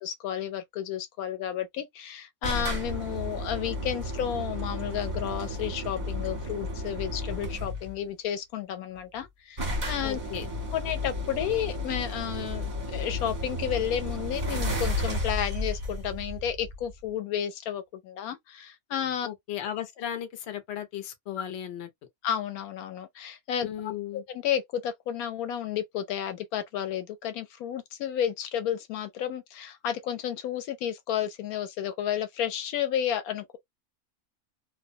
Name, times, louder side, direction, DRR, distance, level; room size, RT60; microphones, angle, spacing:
voice 1, 0.0-10.2 10.7-19.3 22.2-23.7 24.4-33.6, left 10 dB, 80° left, 1.0 m, -32 dB
sound 1, 2.4-7.9 8.9-9.0 9.2-9.3 9.6-17.1, left 1 dB, 30° right, 1.2 m, -33 dB
voice 2, 10.0-10.5 19.2-21.9 23.6-24.2, left 10 dB, 55° left, 0.9 m, -36 dB
2.5 x 2.1 x 2.6 m
omnidirectional pair, 1.5 m